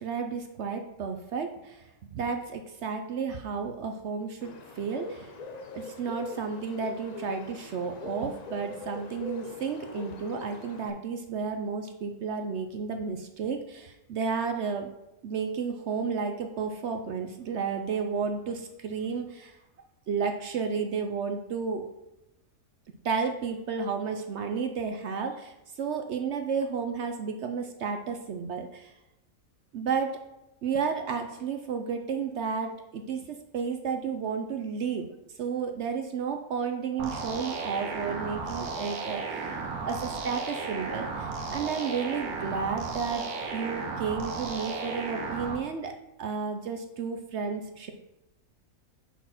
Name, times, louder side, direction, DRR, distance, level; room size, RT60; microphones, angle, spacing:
voice 1, 0.0-5.3 5.7-14.9 15.2-19.6 20.1-21.9 23.0-28.9 29.7-30.2 30.6-43.3 43.5-45.9 46.2-47.9, right 5 dB, 65° right, 6 dB, 0.8 m, -32 dB
Bird, 4.4-10.9, left 4 dB, 55° left, 0.4 m, -42 dB
sound 1, 37.0-45.6, right 4 dB, 85° right, 1.3 m, -34 dB
5.6 x 4.3 x 5.8 m, 0.94 s
omnidirectional pair, 1.5 m